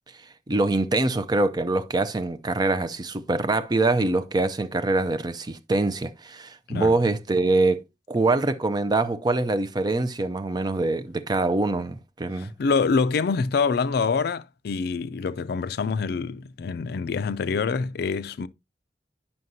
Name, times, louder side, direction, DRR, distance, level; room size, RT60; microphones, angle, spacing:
voice 1, 0.5-7.8 8.1-12.5, right 2 dB, 25° right, 0.5 m, -24 dB
voice 2, 12.4-18.5, left 5 dB, 60° left, 0.4 m, -26 dB
9.3 x 5.6 x 2.6 m
head